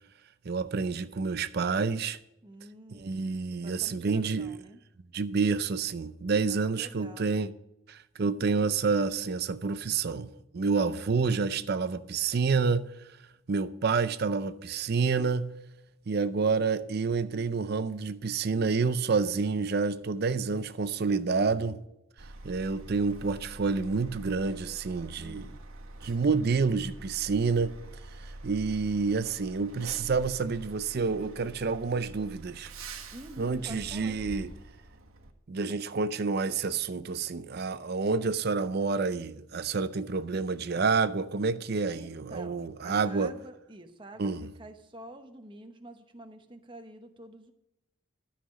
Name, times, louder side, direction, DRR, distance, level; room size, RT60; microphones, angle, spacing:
voice 1, 0.4-2.2 2.9-4.6 5.1-7.5 7.9-12.8 13.5-15.5 16.1-21.8 22.4-25.5 26.0-27.7 28.2-32.7 33.4-34.5 35.5-43.3 44.2-44.5, right 4 dB, 45° right, 0.5 m, -28 dB
voice 2, 2.4-4.8 6.5-7.3 25.1-25.5 33.1-34.2 40.3-40.5 41.9-44.3 44.6-47.5, right 1 dB, 20° right, 0.9 m, -48 dB
Truck, 22.2-35.3, right 2 dB, 75° right, 1.4 m, -46 dB
13.0 x 5.7 x 6.3 m
head